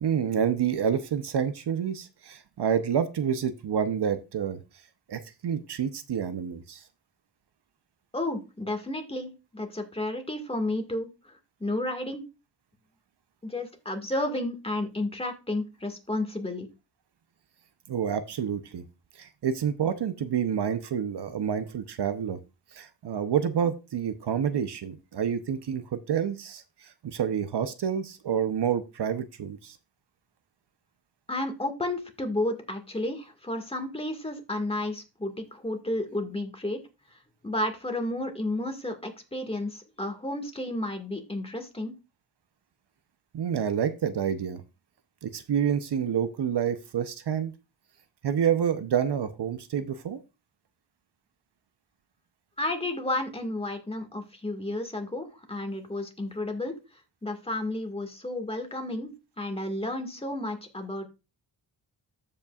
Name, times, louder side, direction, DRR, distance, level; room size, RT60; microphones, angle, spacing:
voice 1, 0.0-4.6 5.1-6.8 17.9-18.8 19.2-22.4 22.7-29.8 43.3-44.6 45.2-47.5 48.2-50.2, right 8 dB, 65° right, 11 dB, 0.8 m, -28 dB
voice 2, 8.1-12.2 13.4-16.7 31.3-36.8 37.1-37.2 37.4-41.9 52.6-56.7 57.2-61.0, left 1 dB, 15° left, 4 dB, 1.8 m, -32 dB
14.0 x 5.4 x 2.4 m, 0.27 s
wide cardioid pair, 100°, 44 cm